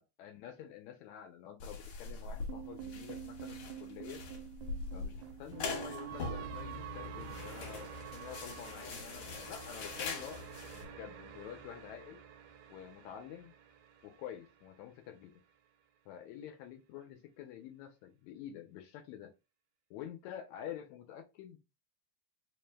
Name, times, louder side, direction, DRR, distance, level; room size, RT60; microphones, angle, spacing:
voice 1, 0.0-4.2 4.9-10.4 10.7-12.2 12.7-13.5 14.0-15.4 16.1-19.3 19.9-21.6, left 10 dB, 80° left, 4 dB, 1.8 m, -48 dB
sound 1, 1.6-10.8, left 4 dB, 60° left, 1.9 m, -43 dB
sound 2, 2.5-14.7, right 7 dB, 80° right, 2.0 m, -48 dB
4.9 x 2.0 x 3.3 m, 0.26 s
omnidirectional pair, 3.5 m